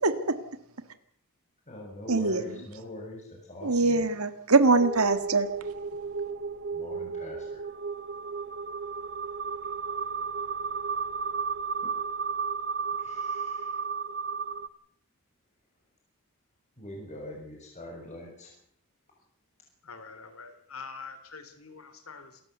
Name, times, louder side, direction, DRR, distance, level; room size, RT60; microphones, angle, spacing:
voice 1, 0.0-0.4 2.1-2.4 3.6-5.5, right 3 dB, 75° right, 10 dB, 1.8 m, -23 dB
voice 2, 1.7-4.0 6.7-7.6 10.0-10.1 11.8-11.9 13.0-13.8 16.8-18.5, left 1 dB, 35° left, -1 dB, 6.8 m, -43 dB
sound 1, 4.8-14.7, right 5 dB, 50° right, 1.0 m, -33 dB
voice 3, 19.8-22.4, left 5 dB, 70° left, 10 dB, 3.5 m, -45 dB
27.5 x 14.5 x 8.0 m, 0.67 s
head